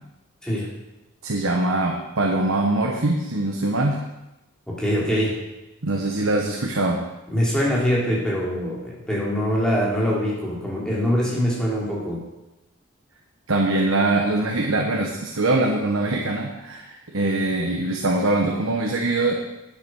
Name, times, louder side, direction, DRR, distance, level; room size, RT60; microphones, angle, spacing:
voice 1, 1.2-4.0 5.8-7.0 13.5-19.3, right 2 dB, 80° right, 1 dB, 1.1 m, -23 dB
voice 2, 4.7-5.4 7.3-12.2, equal, 5° left, -5 dB, 3.0 m, -23 dB
10.5 x 8.1 x 6.2 m, 0.99 s
head